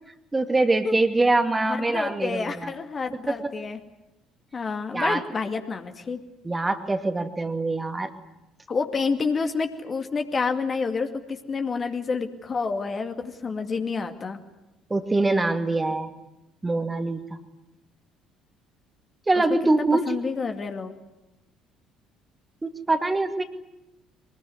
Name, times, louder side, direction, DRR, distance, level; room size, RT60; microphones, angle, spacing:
voice 1, 0.3-2.7 3.3-3.5 4.9-5.2 6.4-8.1 14.9-16.1 16.6-17.2 19.3-20.0 22.6-23.4, right 2 dB, 15° right, 7 dB, 2.3 m, -24 dB
voice 2, 1.6-3.8 4.5-6.2 8.7-14.4 20.1-20.9, left 4 dB, 35° left, 6 dB, 2.3 m, -28 dB
24.0 x 21.0 x 9.8 m, 0.96 s
figure-of-eight pair, 50°, 0 cm